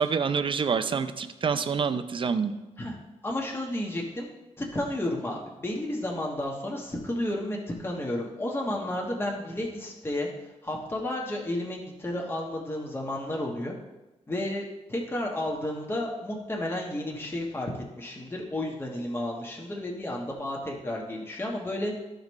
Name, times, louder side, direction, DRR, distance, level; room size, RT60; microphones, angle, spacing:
voice 1, 0.0-2.5, right 6 dB, 40° right, 10 dB, 0.5 m, -27 dB
voice 2, 3.2-4.3 4.6-10.3 10.6-13.7 14.3-14.6 14.9-17.7 17.9-21.9, left 1 dB, 20° left, -2 dB, 1.2 m, -32 dB
13.5 x 5.1 x 3.1 m, 1.1 s
wide cardioid pair, 140°, 13 cm